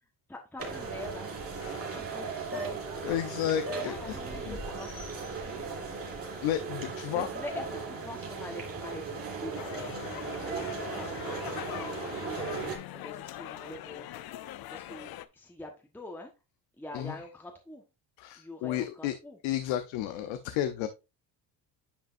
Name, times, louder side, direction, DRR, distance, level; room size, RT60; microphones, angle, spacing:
voice 1, 0.3-1.3 1.9-2.9 3.7-4.9 5.4-5.9 7.1-14.1 14.7-16.3 16.8-17.8 18.4-19.4, left 1 dB, 5° left, 2 dB, 1.2 m, -45 dB
sound 1, 0.6-12.8, right 4 dB, 30° right, 3.0 m, -37 dB
voice 2, 3.0-4.2 4.5-4.6 6.4-7.3 16.9-17.2 18.2-19.1 19.4-20.9, left 11 dB, 85° left, 9 dB, 0.8 m, -32 dB
sound 2, 9.5-15.3, left 13 dB, 55° left, 0.6 m, -42 dB
9.9 x 5.3 x 2.5 m, 0.26 s
cardioid pair, 110°, 45 cm